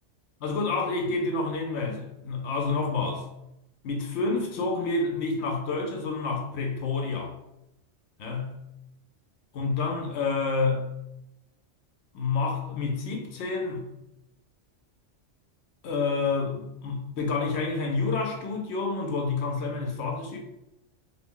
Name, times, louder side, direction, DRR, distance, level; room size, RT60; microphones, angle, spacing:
voice 1, 0.4-3.3 3.8-7.3 8.2-8.5 9.5-10.8 12.1-13.8 15.8-20.4, left 3 dB, 70° left, 2 dB, 0.8 m, -28 dB
2.4 x 2.0 x 3.6 m, 0.86 s
omnidirectional pair, 1.2 m